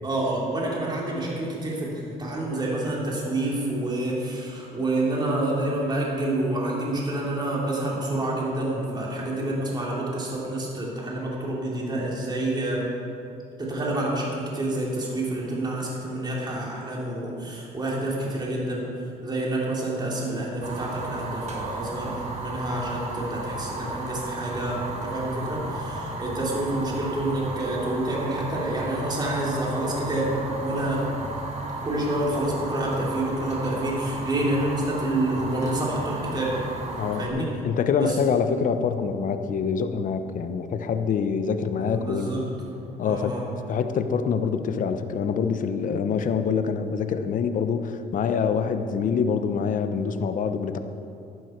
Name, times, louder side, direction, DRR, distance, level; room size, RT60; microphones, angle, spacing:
voice 1, 0.0-12.8 13.6-18.8 19.2-31.0 31.8-36.5 37.2-37.5 38.0-38.2 41.8-43.4, right 1 dB, 25° right, -4 dB, 3.3 m, -28 dB
Fire, 20.6-37.3, right 2 dB, 40° right, 2.2 m, -34 dB
voice 2, 37.0-42.3 43.0-43.4 43.7-50.8, left 6 dB, 50° left, 9 dB, 0.9 m, -25 dB
14.0 x 11.5 x 4.6 m, 2.8 s
cardioid pair, 110°, 17 cm